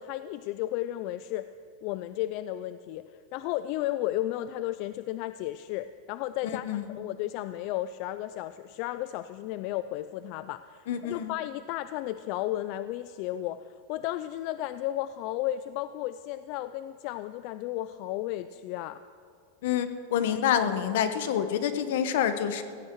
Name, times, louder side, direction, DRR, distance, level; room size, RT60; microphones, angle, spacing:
voice 1, 0.0-1.5 1.8-3.0 3.3-19.0, left 14 dB, 45° left, 13 dB, 0.3 m, -33 dB
voice 2, 6.4-7.0 10.9-11.3 19.6-22.6, left 9 dB, 65° left, 10 dB, 1.1 m, -27 dB
16.5 x 15.0 x 4.7 m, 2.3 s
supercardioid pair, 160°, 0 cm